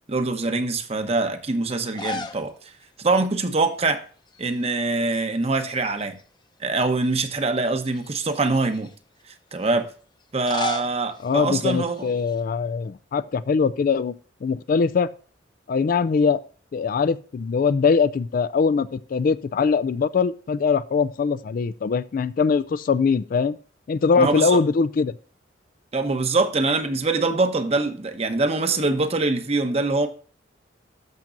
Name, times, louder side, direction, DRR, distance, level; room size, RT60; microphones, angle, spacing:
voice 1, 0.1-2.5 3.0-4.0 4.4-6.2 6.6-8.9 9.5-9.9 10.3-12.1 24.2-24.6 25.9-30.1, right 3 dB, 35° right, 0.9 m, -23 dB
sound 1, 1.8-2.5 2.8-2.9 4.3-4.8 5.1-6.2 6.8-6.9 7.8-8.9 10.2-12.4, left 3 dB, 25° left, 0.7 m, -36 dB
voice 2, 11.2-14.1 14.4-15.1 15.7-16.4 16.7-23.6 23.9-25.1, left 5 dB, 50° left, 0.3 m, -22 dB
13.0 x 6.0 x 2.6 m
head